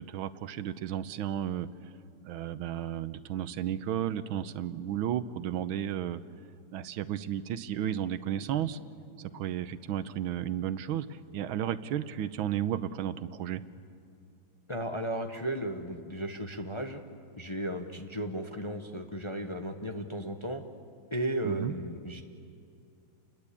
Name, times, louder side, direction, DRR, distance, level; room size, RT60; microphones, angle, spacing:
voice 1, 0.0-1.7 2.2-6.2 6.7-8.8 9.2-13.6 21.4-21.7, right 10 dB, 85° right, 13 dB, 1.6 m, -33 dB
voice 2, 14.7-17.0 17.4-20.6 21.1-22.2, right 1 dB, 25° left, 5 dB, 0.7 m, -35 dB
29.0 x 20.5 x 8.5 m, 2.4 s
omnidirectional pair, 2.2 m